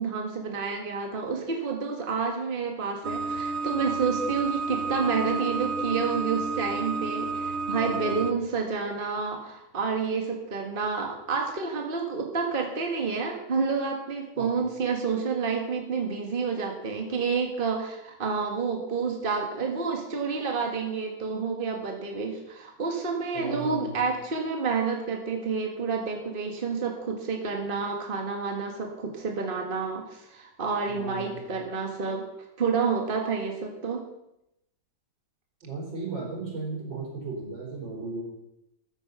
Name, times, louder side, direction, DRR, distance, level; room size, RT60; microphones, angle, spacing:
voice 1, 0.0-32.2 32.6-34.0, right 5 dB, 30° right, 2 dB, 1.8 m, -29 dB
sound 1, 3.0-8.3, right 3 dB, 65° right, 0.6 m, -31 dB
voice 2, 7.7-8.4 14.4-14.5 23.3-24.1 30.9-31.5 35.6-38.2, right 3 dB, 80° right, -3 dB, 5.5 m, -36 dB
14.0 x 9.6 x 5.5 m, 0.86 s
omnidirectional pair, 2.0 m